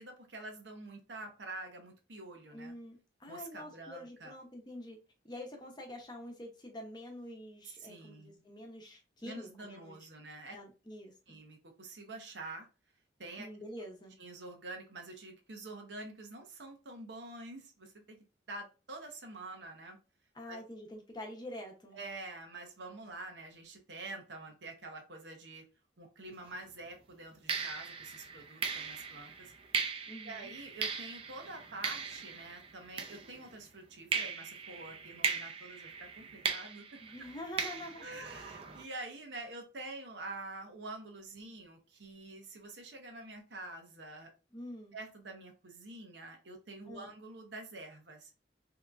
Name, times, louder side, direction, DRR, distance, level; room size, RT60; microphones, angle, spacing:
voice 1, 0.0-2.7 3.3-4.3 7.6-8.5 9.2-10.6 11.3-12.7 13.2-13.5 14.2-18.2 18.5-20.0 20.5-20.6 21.9-25.6 26.0-29.5 30.2-37.0 38.0-44.3 44.9-48.3, right 2 dB, 85° right, 0.9 m, -47 dB
voice 2, 2.5-5.0 5.2-10.0 10.5-11.4 13.4-14.1 20.3-22.0 30.1-30.5 37.0-38.2 44.5-44.9 46.9-47.2, left 1 dB, 25° left, 0.8 m, -46 dB
sound 1, 26.3-26.6 27.5-33.7 34.1-38.8, right 5 dB, 35° right, 0.5 m, -38 dB
3.5 x 2.9 x 2.5 m
head